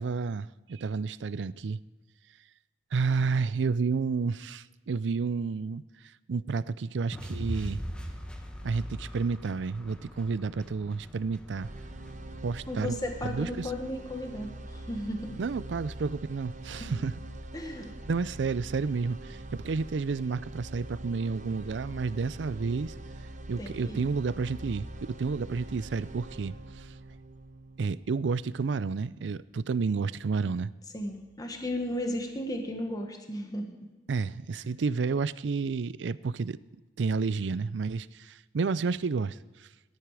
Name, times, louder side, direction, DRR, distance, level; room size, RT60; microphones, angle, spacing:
voice 1, 0.0-1.8 2.9-5.8 6.3-7.8 8.6-11.7 12.4-13.0 13.2-13.7 15.4-17.1 18.1-22.9 23.5-26.9 27.8-30.7 34.1-36.6 37.0-39.7, right 4 dB, 90° right, 18 dB, 0.5 m, -30 dB
sound 1, 7.1-13.3, equal, 5° left, 1.3 m, -41 dB
sound 2, 11.6-29.6, right 1 dB, 45° right, 1.1 m, -44 dB
voice 2, 12.7-15.4 16.7-16.9 17.5-17.9 23.6-24.1 30.9-33.9, left 1 dB, 20° left, 3 dB, 1.4 m, -35 dB
19.0 x 12.5 x 4.8 m, 1.2 s
head